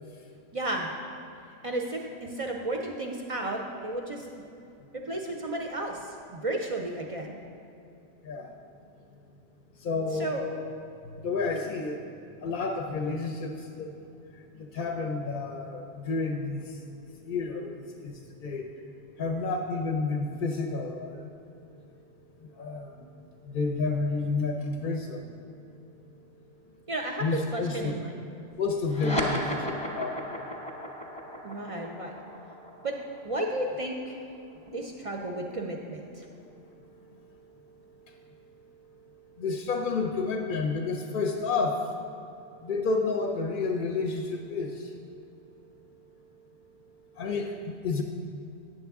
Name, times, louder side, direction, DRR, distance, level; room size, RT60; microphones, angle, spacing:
voice 1, 0.5-0.9 1.6-4.3 4.9-7.4 10.1-10.4 26.9-28.2 29.0-29.3 31.4-32.1 32.8-33.0 33.2-34.2 34.6-36.3, right 2 dB, 55° right, 1 dB, 0.4 m, -33 dB
voice 2, 9.8-10.6 11.2-12.0 12.4-13.5 13.8-13.9 14.7-16.6 17.3-17.7 18.0-18.1 18.4-18.7 19.2-21.2 22.6-22.9 23.5-25.2 27.2-27.9 28.6-30.4 39.4-41.8 42.6-44.7 47.2-48.0, left 4 dB, 60° left, 2 dB, 0.6 m, -30 dB
sound 1, 28.8-35.7, equal, 5° left, 0.7 m, -35 dB
8.5 x 6.8 x 3.5 m, 2.6 s
omnidirectional pair, 1.2 m